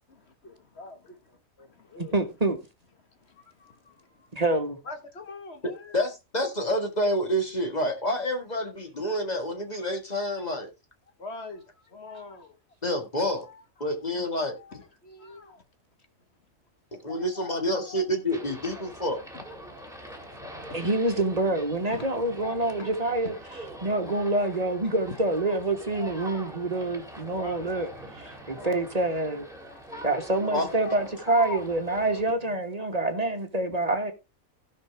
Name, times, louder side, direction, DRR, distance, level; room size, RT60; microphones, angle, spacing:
voice 1, 0.1-1.2 1.6-2.1 3.2-4.3 4.9-6.0 11.2-12.6 13.4-13.6 13.9-14.0 14.4-15.6 17.1-18.8 19.3-19.8 20.7-20.9 21.9-22.1 22.6-22.9 23.2-23.3 25.1-25.2 27.4-27.7 28.5-29.2 29.7-31.7 32.4-32.6 33.0-33.3, left 3 dB, 50° left, 1.8 m, -43 dB
voice 2, 2.0-2.6 4.3-4.8 20.7-23.3 23.8-29.5 30.0-34.1, right 2 dB, 30° right, 1.6 m, -27 dB
voice 3, 5.9-10.7 12.8-13.5 13.8-14.6 17.0-19.2 30.5-30.6, equal, 30° left, 2.1 m, -28 dB
sound 1, 18.3-32.2, right 1 dB, ahead, 2.5 m, -43 dB
17.0 x 6.0 x 3.4 m
omnidirectional pair, 1.4 m